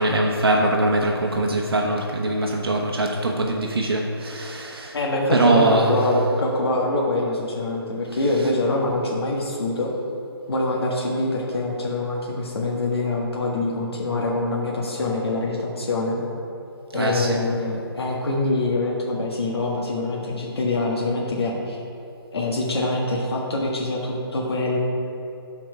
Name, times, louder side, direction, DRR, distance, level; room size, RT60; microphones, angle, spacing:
voice 1, 0.0-5.0 5.3-6.0 16.9-17.4, right 2 dB, 65° right, 0 dB, 1.0 m, -22 dB
voice 2, 4.9-9.9 10.5-16.2 16.9-21.8 22.3-24.8, left 2 dB, 70° left, -3 dB, 1.5 m, -24 dB
12.0 x 4.6 x 4.9 m, 2.9 s
hypercardioid pair, 160°, 13 cm